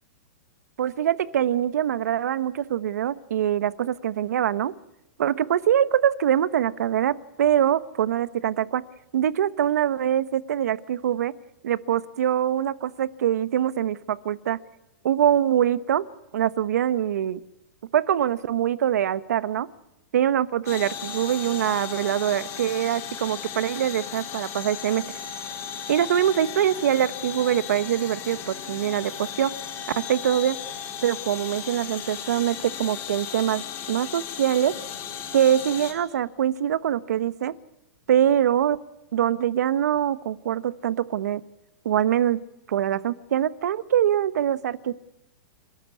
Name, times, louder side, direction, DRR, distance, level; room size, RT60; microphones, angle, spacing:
voice 1, 0.8-4.7 5.2-8.8 9.1-11.3 11.6-14.6 15.0-16.0 16.3-17.4 17.9-19.7 20.1-25.0 25.9-29.5 30.1-30.6 31.0-33.6 33.9-34.7 35.3-37.5 38.1-38.8 39.1-41.4 41.8-42.4 42.7-44.9, right 10 dB, 75° right, 16 dB, 1.2 m, -23 dB
sound 1, 20.7-35.9, left 9 dB, 30° left, 4.7 m, -36 dB
30.0 x 13.0 x 9.7 m, 0.92 s
hypercardioid pair, 155°, 9 cm